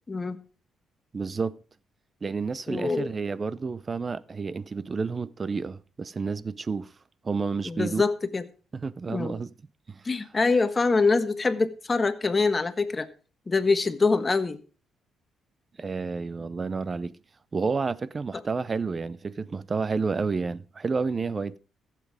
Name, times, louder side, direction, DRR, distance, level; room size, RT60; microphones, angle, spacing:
voice 1, 0.1-0.4 2.7-3.1 7.6-8.4 9.1-9.4 10.0-13.1 13.5-14.6, left 4 dB, 30° left, 1.3 m, -24 dB
voice 2, 1.1-1.6 2.2-6.9 7.2-8.0 8.7-9.5 9.9-10.1 15.8-17.1 17.5-21.6, right 4 dB, 35° right, 0.6 m, -30 dB
14.5 x 7.6 x 5.0 m
cardioid pair, 90°, 0 cm